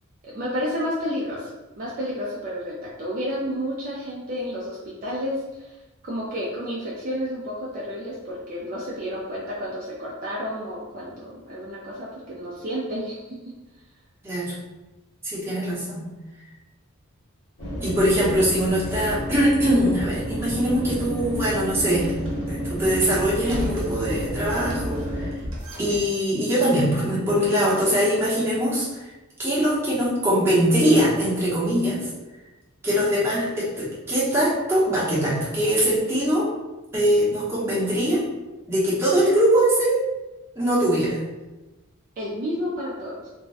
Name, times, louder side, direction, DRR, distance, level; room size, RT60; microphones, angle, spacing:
voice 1, 0.2-1.5 1.8-5.7 6.0-13.4 42.2-43.3, equal, 40° right, -6 dB, 0.4 m, -31 dB
voice 2, 14.2-14.6 15.2-16.1 17.8-22.1 22.5-25.4 25.8-29.1 29.4-32.1 32.8-36.5 36.9-38.2 38.7-40.0 40.6-41.2, equal, 10° right, -8 dB, 0.8 m, -22 dB
sound 1, 17.6-25.3, equal, 70° left, 1.2 m, -30 dB
sound 2, 22.1-22.6 23.4-24.0 24.5-26.1, equal, 60° right, 0.7 m, -35 dB
2.5 x 2.2 x 3.3 m, 1.1 s
head